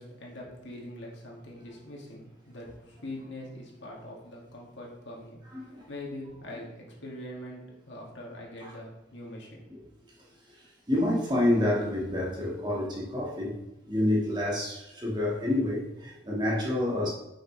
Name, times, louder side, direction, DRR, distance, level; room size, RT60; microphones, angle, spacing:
voice 1, 0.0-9.6, left 1 dB, 65° left, -2 dB, 2.1 m, -43 dB
voice 2, 5.5-5.9 8.6-8.7 9.7-9.8 10.9-13.6 13.8-17.1, left 1 dB, 20° right, -4 dB, 1.7 m, -28 dB
9.8 x 6.4 x 3.2 m, 0.91 s
head